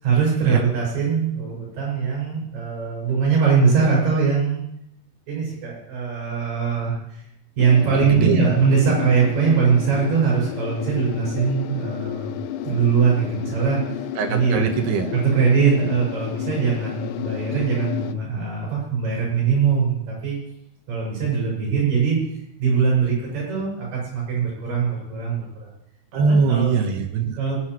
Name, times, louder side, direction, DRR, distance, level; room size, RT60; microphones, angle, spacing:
voice 1, 0.0-4.6 5.3-7.0 7.6-12.4 12.6-13.8 14.3-14.6 15.1-20.4 20.9-22.2 22.6-25.7 26.1-26.7 27.4-27.6, right 6 dB, 55° right, -4 dB, 7.4 m, -21 dB
sound 1, 7.6-18.1, left 11 dB, 85° left, 2.6 m, -31 dB
voice 2, 7.9-8.6 14.2-15.1 17.2-17.4 26.1-27.4, right 5 dB, 80° right, 4 dB, 3.1 m, -22 dB
20.5 x 9.7 x 3.1 m, 0.78 s
omnidirectional pair, 4.7 m